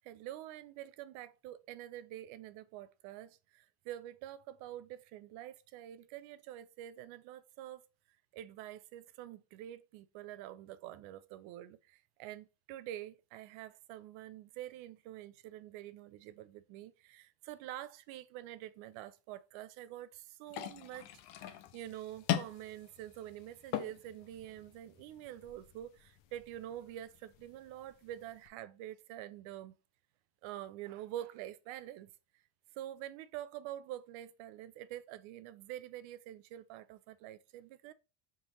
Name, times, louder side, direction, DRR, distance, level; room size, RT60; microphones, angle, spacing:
voice 1, 0.0-7.8 8.3-21.1 21.4-29.7 30.4-32.1 32.8-37.9, right 12 dB, 65° right, 0.6 m, -47 dB
sound 1, 20.5-28.5, left 12 dB, 55° left, 0.7 m, -42 dB
3.7 x 3.0 x 4.2 m
cardioid pair, 125°, 50 cm